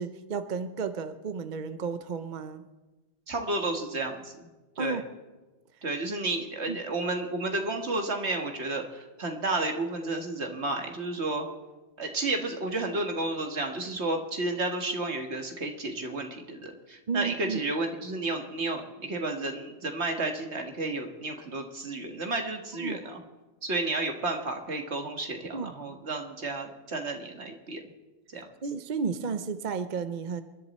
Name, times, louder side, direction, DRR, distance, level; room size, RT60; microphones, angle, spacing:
voice 1, 0.0-2.6 4.8-5.0 6.7-6.8 17.1-17.6 22.8-23.0 25.5-26.0 28.6-30.4, right 5 dB, 45° right, 10 dB, 0.8 m, -33 dB
voice 2, 3.3-4.5 4.8-5.0 5.8-11.5 12.0-23.2 23.6-27.8 28.3-28.5, right 2 dB, 70° right, 4 dB, 1.9 m, -32 dB
28.5 x 11.5 x 4.2 m, 1.2 s
omnidirectional pair, 1.2 m